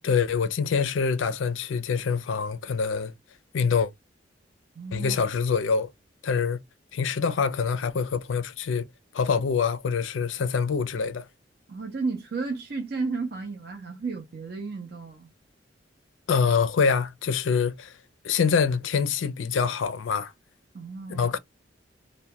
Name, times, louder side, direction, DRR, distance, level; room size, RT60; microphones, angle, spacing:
voice 1, 0.0-3.1 3.5-3.9 4.9-5.9 6.2-6.6 6.9-8.8 9.1-11.3 16.3-17.9 18.2-20.3 21.1-21.4, left 5 dB, 85° left, 0.4 m, -25 dB
voice 2, 4.7-5.2 11.7-15.3 20.7-21.3, right 4 dB, 55° right, 0.5 m, -33 dB
2.2 x 2.1 x 2.7 m
head